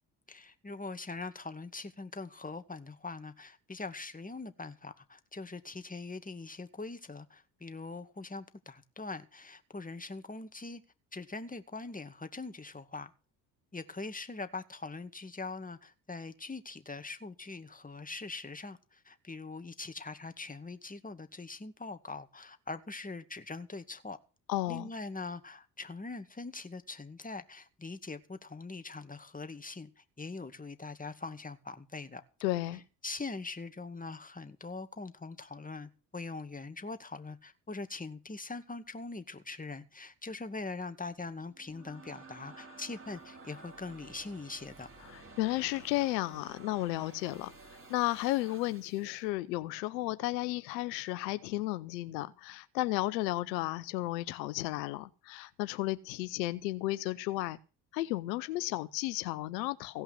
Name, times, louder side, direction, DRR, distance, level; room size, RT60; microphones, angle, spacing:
voice 1, 0.3-10.8 11.1-13.1 13.7-24.2 24.7-32.2 33.0-44.9, left 3 dB, 15° left, 2.2 m, -42 dB
voice 2, 24.5-24.9 32.4-32.8 45.0-47.5 47.9-57.6 57.9-60.0, left 17 dB, 90° left, 0.9 m, -33 dB
sound 1, 41.5-49.2, right 3 dB, 25° right, 5.6 m, -52 dB
17.0 x 5.7 x 9.8 m
hypercardioid pair, 60°, 49 cm